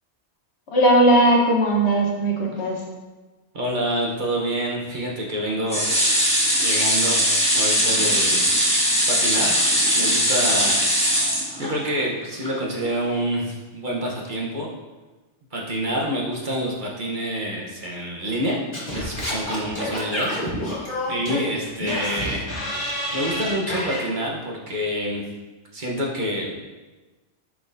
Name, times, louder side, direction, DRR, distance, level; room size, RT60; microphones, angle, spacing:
voice 1, 0.7-2.8, right 1 dB, 65° left, -1 dB, 1.3 m, -18 dB
voice 2, 3.5-6.2 6.6-8.4 9.1-9.6 10.0-10.8 11.6-14.7 15.5-18.6 18.9-20.3 21.1-22.5 23.1-25.2 25.7-26.5, right 1 dB, 45° right, -3 dB, 1.1 m, -27 dB
sound 1, 5.7-12.0 12.4-12.5 12.8-12.9, equal, 5° left, 1.3 m, -20 dB
Singing / Scratching (performance technique), 18.7-24.0, left 1 dB, 45° left, 1.7 m, -28 dB
6.3 x 5.8 x 2.6 m, 1.2 s
omnidirectional pair, 1.2 m